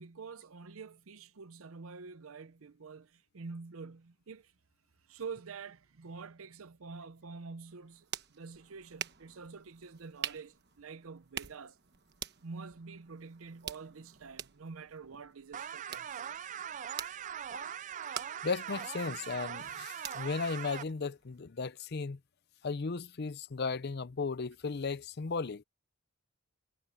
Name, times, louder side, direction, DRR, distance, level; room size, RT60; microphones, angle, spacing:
voice 1, 0.0-4.5 5.1-8.1 8.3-11.8 12.4-16.2, right 4 dB, 85° right, 0.7 m, -47 dB
sound 1, 7.7-21.4, right 9 dB, 55° right, 1.2 m, -47 dB
sound 2, 15.5-20.8, right 8 dB, 35° right, 0.4 m, -41 dB
voice 2, 18.4-22.2 22.6-25.6, left 4 dB, 50° left, 0.6 m, -35 dB
head